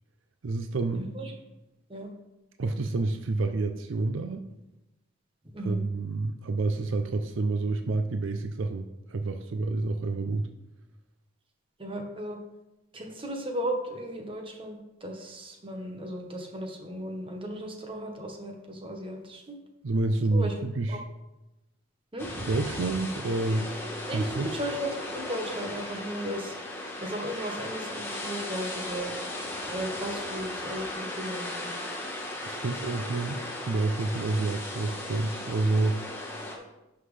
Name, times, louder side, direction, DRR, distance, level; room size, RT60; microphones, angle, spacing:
voice 1, 0.4-1.1 2.6-4.5 5.6-10.5 19.8-21.0 22.5-23.7 24.1-24.5 32.4-36.0, right 3 dB, 70° right, 7 dB, 0.5 m, -28 dB
voice 2, 0.9-1.3 1.9-2.1 5.5-5.8 11.8-12.4 12.9-19.6 20.3-20.6 20.9-21.0 22.1-22.3 24.1-26.6 27.0-29.1 29.7-31.7 36.4-36.6, equal, 25° right, 3 dB, 1.2 m, -36 dB
sound 1, 22.2-36.6, left 1 dB, 10° left, 1.2 m, -36 dB
11.0 x 5.9 x 3.3 m, 0.96 s
head